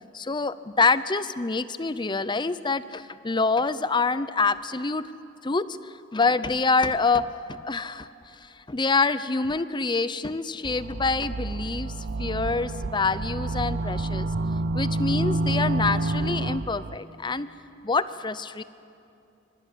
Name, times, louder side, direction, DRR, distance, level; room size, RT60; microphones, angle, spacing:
voice 1, 0.1-5.0 5.4-11.9 12.2-14.3 14.7-17.5 17.8-18.6, left 4 dB, 25° left, 14 dB, 0.6 m, -26 dB
sound 1, 10.6-17.0, right 2 dB, 50° right, 0.6 m, -28 dB
25.0 x 24.5 x 9.2 m, 2.6 s
head